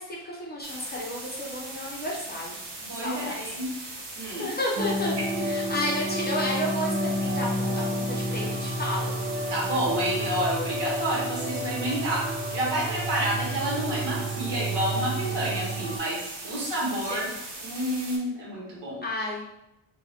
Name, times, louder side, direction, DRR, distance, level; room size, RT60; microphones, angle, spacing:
voice 1, 0.0-2.6 3.0-3.5 4.4-5.1 5.4-9.1 17.1-17.4 19.0-19.4, left 1 dB, 20° left, -4 dB, 0.7 m, -32 dB
sound 1, 0.6-18.2, right 2 dB, 80° right, 1.2 m, -40 dB
voice 2, 2.9-3.7 4.2-4.5 5.3-5.4 9.5-17.3 17.6-19.0, right 1 dB, 60° right, -3 dB, 1.3 m, -29 dB
sound 2, 4.8-16.0, right 1 dB, 40° right, 0.6 m, -30 dB
3.7 x 2.4 x 2.8 m, 0.90 s
cardioid pair, 90°, 47 cm